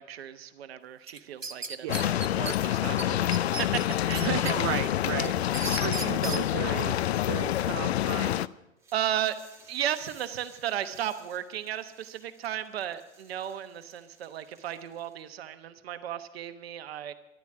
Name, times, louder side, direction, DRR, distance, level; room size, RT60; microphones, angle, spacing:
voice 1, 0.0-4.3 8.9-9.4 9.7-17.1, right 10 dB, 55° right, 11 dB, 1.1 m, -35 dB
sound 1, 1.1-2.5 3.0-3.1 3.3-4.5 4.9-6.4, right 4 dB, 90° right, 0.9 m, -35 dB
sound 2, 1.9-8.5, left 12 dB, 55° left, 0.5 m, -27 dB
voice 2, 4.2-5.3 5.8-7.0 7.3-8.4, right 11 dB, 25° right, 9 dB, 0.4 m, -34 dB
sound 3, 8.8-15.3, right 4 dB, 5° right, 2.5 m, -57 dB
12.5 x 11.5 x 7.7 m, 0.96 s
figure-of-eight pair, 100°, 37 cm